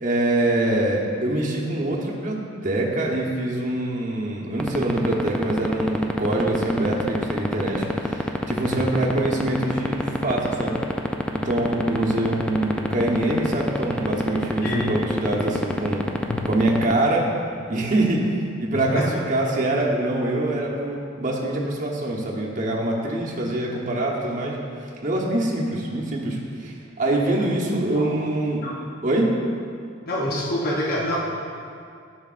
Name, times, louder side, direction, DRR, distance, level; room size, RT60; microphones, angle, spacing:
voice 1, 0.0-10.8 11.3-16.0 16.4-17.3 17.7-24.6 25.0-28.7 29.0-29.3, right 1 dB, 40° right, -3 dB, 1.0 m, -24 dB
sound 1, 4.6-16.9, left 1 dB, 5° left, 0.3 m, -22 dB
voice 2, 14.6-15.0 16.3-16.4 18.7-19.1 28.0-28.1 28.6-28.8 30.1-31.2, left 1 dB, 50° left, -4 dB, 0.8 m, -26 dB
11.0 x 6.5 x 2.5 m, 2.3 s
head